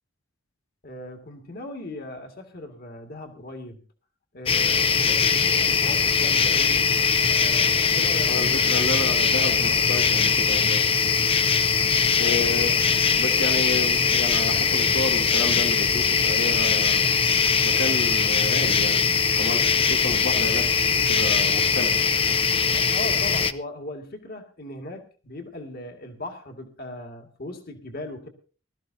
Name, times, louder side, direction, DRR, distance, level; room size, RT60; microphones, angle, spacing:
voice 1, 0.8-3.8 4.3-6.9 7.3-8.8 12.1-12.4 22.7-28.3, left 1 dB, 50° left, 4 dB, 2.0 m, -38 dB
sound 1, 4.5-23.5, left 6 dB, 25° left, 0.5 m, -21 dB
voice 2, 8.3-10.8 12.2-12.9 13.2-17.0 17.6-19.0 19.4-21.9, left 2 dB, 75° left, 1 dB, 1.8 m, -31 dB
20.5 x 13.0 x 2.7 m, 0.36 s
head